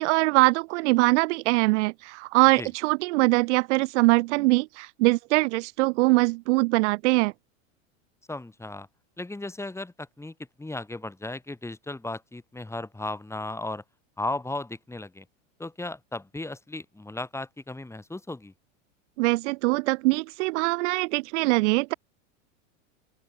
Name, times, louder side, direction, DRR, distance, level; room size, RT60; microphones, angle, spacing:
voice 1, 0.0-7.3 19.2-21.9, right 24 dB, 60° right, 1.3 m, -22 dB
voice 2, 8.3-8.9 9.2-13.8 14.2-15.3 15.6-18.5, left 2 dB, 5° left, 7.4 m, -35 dB
open air
hypercardioid pair, 110°, 39 cm